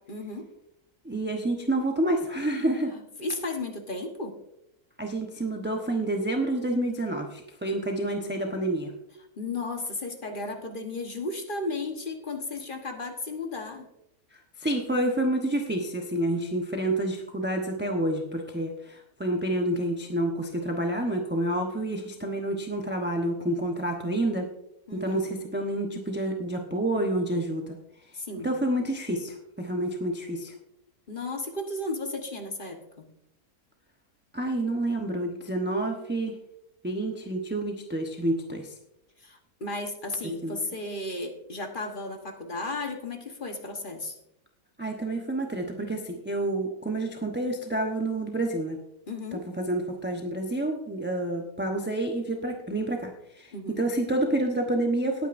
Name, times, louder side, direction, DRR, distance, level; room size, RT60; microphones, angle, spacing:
voice 1, 0.1-0.5 2.9-4.4 9.4-13.9 24.9-25.3 28.1-28.5 31.1-33.1 39.2-44.2 49.1-49.4 53.5-53.8, left 2 dB, 35° left, 4 dB, 1.4 m, -34 dB
voice 2, 1.0-2.9 5.0-8.9 14.6-24.5 24.9-27.8 28.4-30.5 34.3-36.4 36.8-38.7 40.4-40.6 44.8-48.8 49.3-55.3, right 1 dB, 10° right, 1 dB, 0.8 m, -28 dB
18.5 x 9.1 x 2.6 m, 0.82 s
omnidirectional pair, 1.6 m